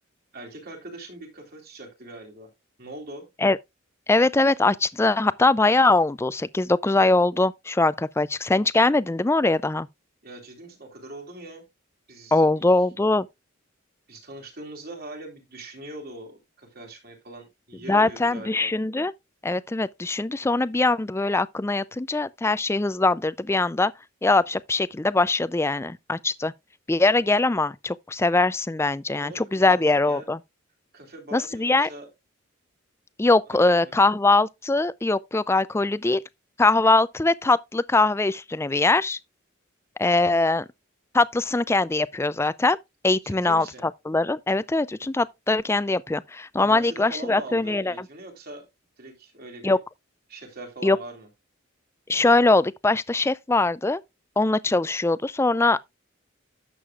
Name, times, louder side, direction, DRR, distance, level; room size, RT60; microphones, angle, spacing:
voice 1, 0.3-2.5 2.8-3.3 10.2-11.7 12.1-12.6 14.1-18.7 29.1-30.3 30.9-32.1 33.5-34.1 43.2-43.9 46.6-48.6 49.0-49.8 50.3-51.3, right 2 dB, 50° right, 3.5 m, -41 dB
voice 2, 4.1-9.9 12.3-13.3 17.9-19.1 19.4-23.9 24.2-26.5 26.9-30.4 31.3-31.9 33.2-36.2 36.6-39.2 40.0-40.7 41.1-42.8 43.0-48.1 49.6-49.8 50.8-51.0 52.1-54.0 54.4-56.0, left 2 dB, 15° left, 0.4 m, -22 dB
11.0 x 7.6 x 2.4 m
head